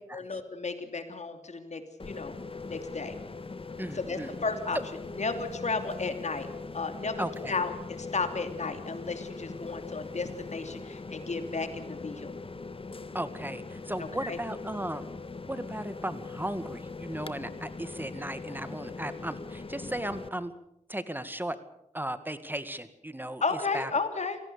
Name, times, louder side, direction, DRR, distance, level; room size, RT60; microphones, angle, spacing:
voice 1, 0.1-2.3 2.6-3.1 3.9-4.8 5.2-6.5 6.7-12.3 14.2-14.4 23.4-24.4, left 4 dB, 65° left, 7 dB, 2.9 m, -33 dB
sound 1, 2.0-20.3, left 3 dB, 45° left, 1.6 m, -41 dB
voice 2, 3.8-4.3 7.2-7.6 13.1-15.1 15.5-20.5 20.9-21.6 21.9-23.9, right 1 dB, 15° right, 11 dB, 1.9 m, -36 dB
25.5 x 18.0 x 7.0 m, 0.82 s
cardioid pair, 50°, 13 cm